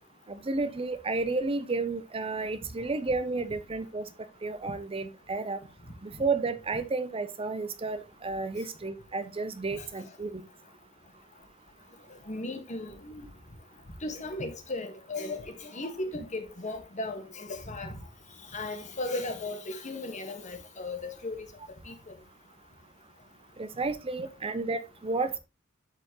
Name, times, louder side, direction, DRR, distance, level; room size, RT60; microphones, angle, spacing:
voice 1, 0.3-4.0 4.4-5.6 6.0-10.4 23.6-25.4, right 3 dB, 30° right, 0.6 m, -32 dB
voice 2, 12.3-13.3 14.0-17.9 18.5-21.5 21.9-22.0, left 2 dB, 35° left, 1.5 m, -36 dB
12.5 x 4.3 x 3.0 m
head